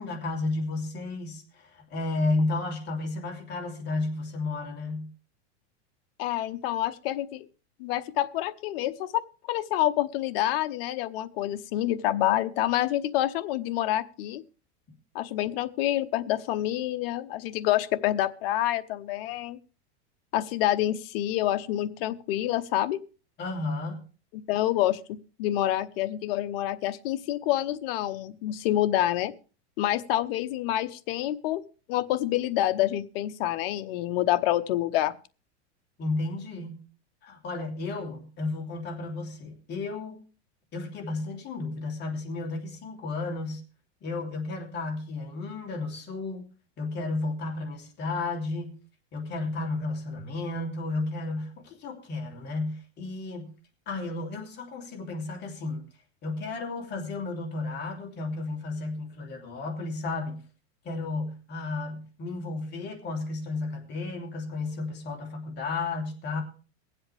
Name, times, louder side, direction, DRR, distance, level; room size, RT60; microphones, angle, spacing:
voice 1, 0.0-5.1 23.4-24.0 36.0-36.8 37.2-40.2 40.7-43.6 44.0-46.4 46.8-48.8 49.1-53.5 53.9-55.8 56.2-60.4 60.8-66.4, left 3 dB, 30° left, 2 dB, 2.8 m, -33 dB
voice 2, 6.2-7.5 7.8-9.2 9.5-14.4 15.1-19.6 20.3-23.0 24.3-29.3 29.8-31.6 31.9-35.1, left 13 dB, 55° left, 11 dB, 0.9 m, -27 dB
22.5 x 7.9 x 3.4 m, 0.36 s
supercardioid pair, 140°, 34 cm